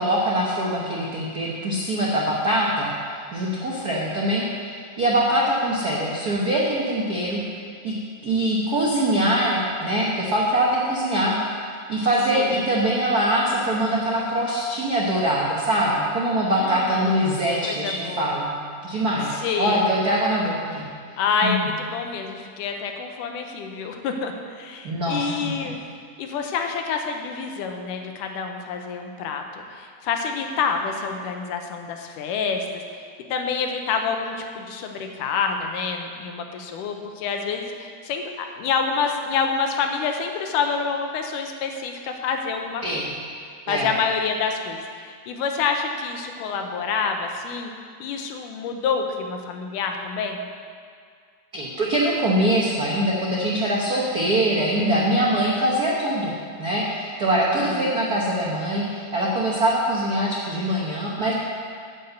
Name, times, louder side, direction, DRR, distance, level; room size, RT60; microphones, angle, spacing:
voice 1, 0.0-7.9 8.2-11.6 11.9-18.5 18.8-20.8 21.4-21.7 24.8-25.7 42.8-43.1 43.7-43.9 51.5-56.3 56.6-61.3, right 1 dB, 85° right, -4 dB, 0.8 m, -23 dB
voice 2, 16.5-17.2 17.6-18.3 19.3-19.8 21.2-25.8 26.2-43.1 43.7-47.7 48.0-50.4 57.5-58.0, left 5 dB, 85° left, 4 dB, 2.4 m, -27 dB
10.5 x 5.4 x 8.0 m, 2.1 s
omnidirectional pair, 3.6 m